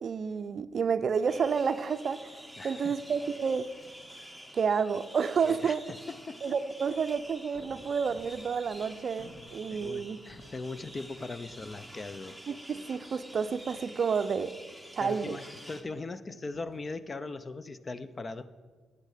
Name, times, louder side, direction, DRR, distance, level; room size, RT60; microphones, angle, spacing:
voice 1, 0.0-3.7 4.5-5.8 6.4-10.2 12.5-14.6 14.9-15.4, right 6 dB, 55° right, 12 dB, 0.5 m, -30 dB
sound 1, 1.3-15.8, equal, 10° left, 1.1 m, -49 dB
sound 2, 2.1-2.7 3.0-4.2 6.7-12.2 15.6-16.0 16.5-16.9, equal, 65° left, 3.4 m, -57 dB
voice 2, 2.6-2.9 5.4-6.5 7.7-7.8 9.4-12.4 15.0-18.5, left 3 dB, 30° left, 14 dB, 0.6 m, -40 dB
9.7 x 8.9 x 5.0 m, 1.4 s
cardioid pair, 75°, 0 cm